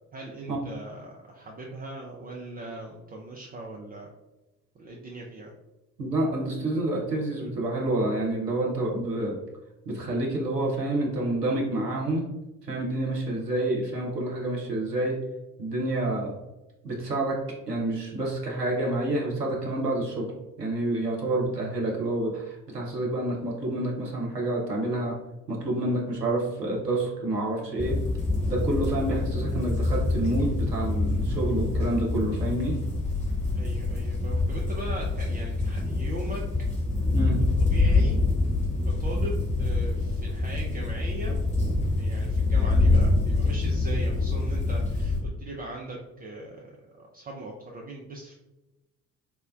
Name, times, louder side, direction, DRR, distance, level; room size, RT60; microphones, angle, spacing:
voice 1, 0.1-4.1 4.7-5.5 13.3-13.4 21.1-21.3 33.5-36.4 37.7-38.2 38.8-41.4 42.0-48.3, right 2 dB, 20° right, -2 dB, 0.4 m, -40 dB
voice 2, 6.0-9.3 9.9-12.3 12.6-15.2 15.6-16.3 16.8-17.4 17.7-20.3 20.6-25.1 25.5-28.0 28.5-32.8 37.1-37.4, right 1 dB, 90° right, -2 dB, 0.7 m, -28 dB
sound 1, 27.8-45.2, left 3 dB, 15° left, 1.1 m, -26 dB
4.2 x 2.1 x 2.4 m, 1.0 s
figure-of-eight pair, 50°, 46 cm